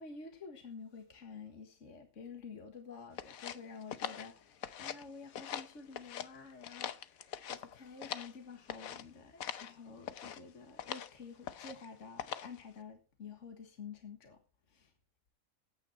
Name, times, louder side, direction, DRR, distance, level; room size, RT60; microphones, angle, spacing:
voice 1, 0.0-14.4 14.7-14.9, left 5 dB, 60° left, 1.9 m, -50 dB
sound 1, 3.2-5.1 5.3-6.3 6.6-8.4 8.7-9.0 9.4-9.7 10.0-10.4 10.8-11.1 11.4-11.9 12.2-12.6, left 9 dB, 80° left, 1.3 m, -42 dB
15.0 x 9.1 x 4.4 m
omnidirectional pair, 1.5 m